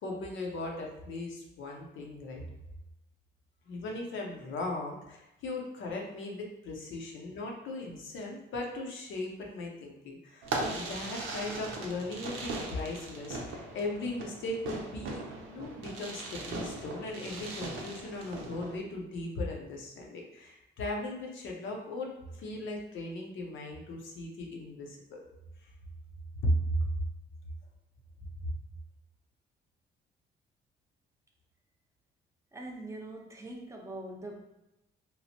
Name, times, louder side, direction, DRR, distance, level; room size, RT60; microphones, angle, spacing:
voice 1, 0.0-2.4 3.7-15.2 15.5-25.2 25.6-25.7 26.4-26.9 28.4-28.5, left 1 dB, 80° left, 0 dB, 0.7 m, -37 dB
Fireworks, 10.4-18.8, right 2 dB, 85° right, 0.6 m, -39 dB
voice 2, 32.5-34.4, right 1 dB, 15° right, 0 dB, 0.6 m, -42 dB
3.0 x 2.1 x 2.8 m, 0.91 s
cardioid pair, 90°, 20 cm